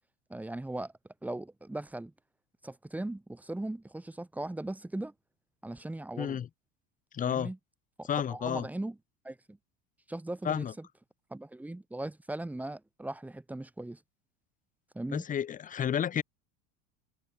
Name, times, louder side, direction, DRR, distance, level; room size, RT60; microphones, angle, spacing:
voice 1, 0.3-0.9 1.2-2.1 2.6-5.1 5.6-6.4 7.2-7.6 8.0-9.0 9.2-9.6 10.1-10.9 11.3-14.0 14.9-15.3, right 1 dB, 5° right, 1.0 m, -38 dB
voice 2, 6.2-6.5 7.1-7.5 8.1-8.7 10.4-10.7 15.1-16.2, left 9 dB, 20° left, 0.8 m, -31 dB
supercardioid pair, 120°, 36 cm